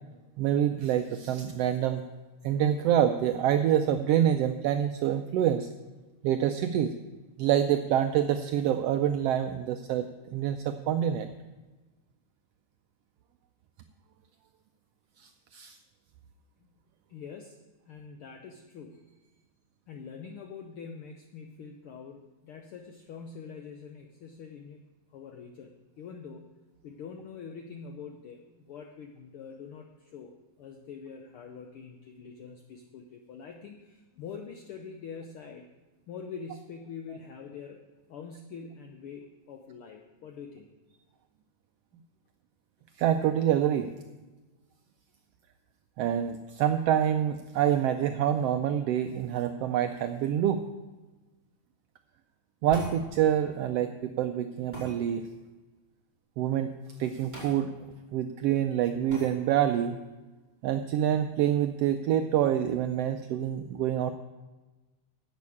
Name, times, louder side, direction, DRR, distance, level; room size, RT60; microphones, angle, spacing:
voice 1, 0.4-2.0 2.4-5.7 6.2-6.9 7.4-11.3 15.2-15.8 43.0-43.9 46.0-50.6 52.6-55.3 56.4-56.7 57.0-57.7 58.1-60.0 60.6-64.1, right 10 dB, 90° right, 8 dB, 1.3 m, -26 dB
voice 2, 17.1-19.3 19.9-24.8 25.1-26.5 26.8-30.3 30.6-35.7 36.1-37.8 38.1-40.7, left 6 dB, 75° left, 5 dB, 1.3 m, -44 dB
sound 1, 52.7-53.0 54.7-54.9 57.3-57.5 57.9-58.0 59.1-59.3, right 1 dB, 15° right, 5.4 m, -40 dB
10.5 x 7.3 x 8.3 m, 1.2 s
omnidirectional pair, 3.4 m